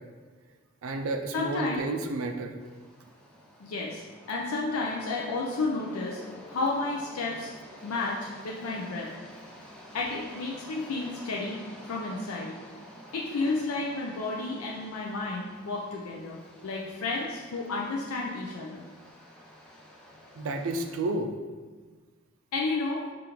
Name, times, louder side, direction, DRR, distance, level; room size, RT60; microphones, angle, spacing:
voice 1, 0.8-2.6 20.4-21.3, right 2 dB, 75° right, 5 dB, 0.4 m, -31 dB
voice 2, 1.3-1.8 3.6-4.0 4.3-6.2 6.5-7.5 7.8-9.1 9.9-11.6 11.9-12.5 13.1-18.8 22.5-23.0, left 3 dB, 85° left, -2 dB, 0.4 m, -31 dB
sound 1, 2.6-21.0, left 1 dB, 5° left, 0.3 m, -49 dB
4.9 x 2.5 x 2.9 m, 1.4 s
head